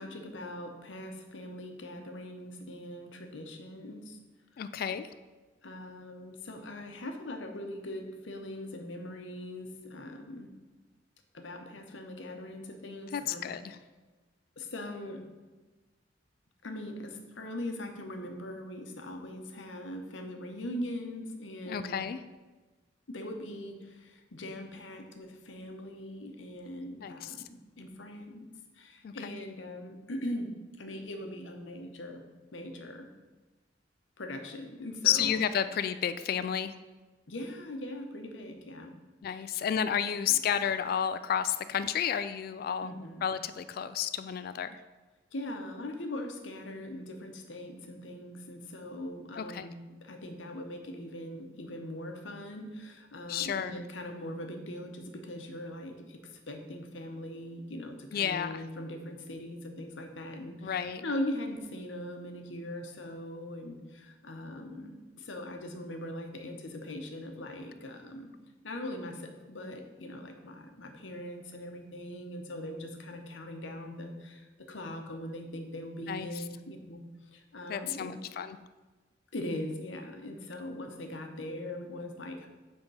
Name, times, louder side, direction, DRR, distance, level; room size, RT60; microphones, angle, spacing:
voice 1, 0.0-4.2 5.6-10.5 11.3-13.5 14.6-15.2 16.6-22.0 23.1-28.5 28.8-30.5 30.8-32.2 32.5-33.1 34.2-35.3 37.3-38.9 39.3-39.4 40.0-40.4 42.8-43.3 45.3-56.2 56.5-68.3 68.6-77.0 77.3-78.1 79.3-82.5, left 1 dB, 85° left, 5 dB, 0.9 m, -41 dB
voice 2, 4.6-5.1 13.1-13.8 21.7-22.2 27.0-27.4 29.0-29.3 35.0-36.7 39.2-42.9 43.2-44.8 49.4-49.7 53.3-53.8 58.1-58.6 60.6-61.0 76.1-76.5 77.7-78.6, left 9 dB, 55° left, 12 dB, 0.3 m, -31 dB
7.9 x 3.6 x 5.5 m, 1.2 s
head